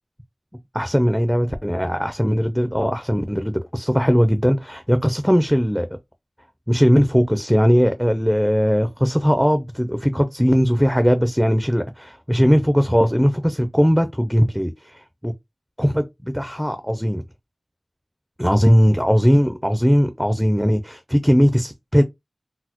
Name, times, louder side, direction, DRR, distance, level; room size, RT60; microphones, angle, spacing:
voice 1, 0.7-5.9 6.7-15.3 15.8-17.2 18.4-22.0, equal, ahead, 0.4 m, -19 dB
4.1 x 2.0 x 2.8 m
wide cardioid pair, 75°, 0 cm